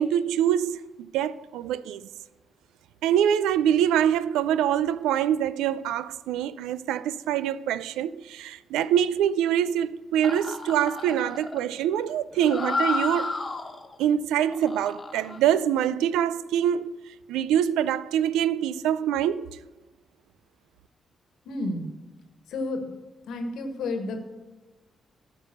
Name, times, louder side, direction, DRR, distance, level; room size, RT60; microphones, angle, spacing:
voice 1, 0.0-2.1 3.0-13.4 14.0-19.5, right 10 dB, 80° right, 0.3 m, -25 dB
sound 1, 10.2-14.0 14.4-15.4, left 3 dB, 40° left, 1.3 m, -32 dB
voice 2, 21.4-21.9 22.5-22.9 23.3-24.2, left 2 dB, 75° left, 1.4 m, -31 dB
13.5 x 5.3 x 6.4 m
hypercardioid pair, 45°, 0 cm